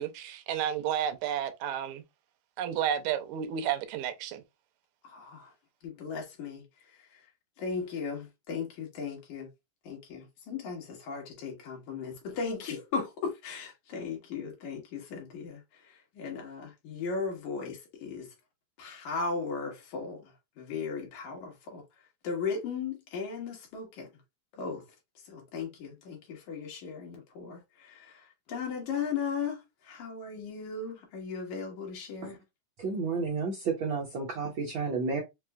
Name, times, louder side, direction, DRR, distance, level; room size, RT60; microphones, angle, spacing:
voice 1, 0.0-2.0 2.6-4.4, right 9 dB, 85° right, 2.0 m, -31 dB
voice 2, 5.0-5.5 5.8-7.3 7.6-9.5 9.8-18.3 18.8-24.1 24.5-24.9 25.2-32.4, left 5 dB, 80° left, 2.6 m, -37 dB
voice 3, 32.8-35.2, right 4 dB, 70° right, 1.1 m, -31 dB
5.8 x 2.5 x 2.2 m
omnidirectional pair, 3.3 m